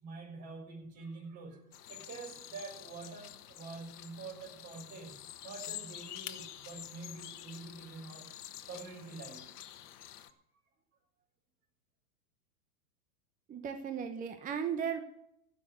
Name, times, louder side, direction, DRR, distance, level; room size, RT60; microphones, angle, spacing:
voice 1, 0.0-8.3 8.7-9.5 10.2-10.4, right 4 dB, 35° right, 0 dB, 6.7 m, -47 dB
sound 1, 1.7-10.3, left 12 dB, 75° left, 1.3 m, -48 dB
voice 2, 13.5-15.0, right 7 dB, 20° right, 7 dB, 1.0 m, -36 dB
16.0 x 6.8 x 8.2 m, 0.75 s
hypercardioid pair, 130°, 46 cm